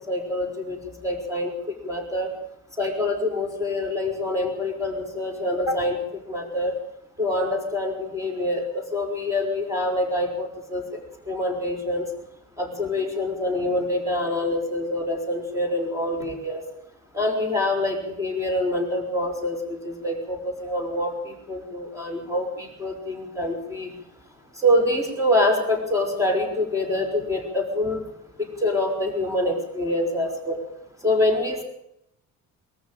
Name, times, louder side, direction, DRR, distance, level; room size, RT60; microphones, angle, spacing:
voice 1, 0.0-2.3 2.8-6.7 7.2-11.0 11.3-12.1 12.6-16.6 17.1-23.9 24.6-28.1 28.4-30.6 31.0-31.6, left 1 dB, 10° right, 3 dB, 5.6 m, -26 dB
22.0 x 14.0 x 9.1 m, 0.80 s
cardioid pair, 150°, 30 cm